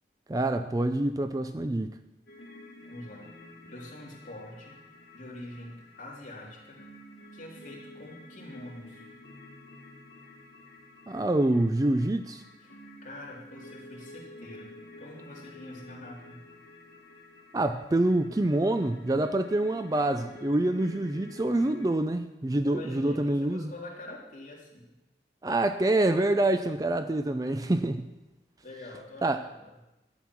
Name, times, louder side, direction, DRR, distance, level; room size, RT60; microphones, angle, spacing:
voice 1, 0.3-1.9 11.1-12.4 17.5-23.7 25.4-28.1 29.2-29.4, right 1 dB, 20° right, 9 dB, 0.4 m, -26 dB
sound 1, 2.3-21.9, left 1 dB, 65° left, 1.9 m, -50 dB
voice 2, 2.9-3.3 3.7-4.8 5.1-6.8 7.3-9.0 12.6-12.7 13.0-14.7 15.0-16.4 22.6-24.9 28.6-29.7, left 1 dB, 45° left, -4 dB, 3.2 m, -45 dB
12.0 x 8.9 x 6.0 m, 0.99 s
head